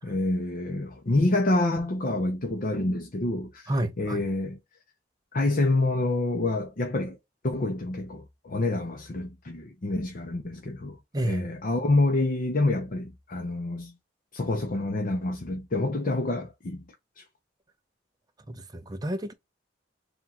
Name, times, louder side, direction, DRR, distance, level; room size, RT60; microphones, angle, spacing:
voice 1, 0.0-3.7 4.0-4.6 5.3-7.2 7.4-11.0 11.2-13.9 14.3-16.8 17.2-17.3, left 2 dB, 50° left, 0.7 m, -27 dB
voice 2, 3.7-4.3 11.1-11.5 18.5-19.3, right 1 dB, 20° right, 0.6 m, -30 dB
3.6 x 2.4 x 4.2 m
head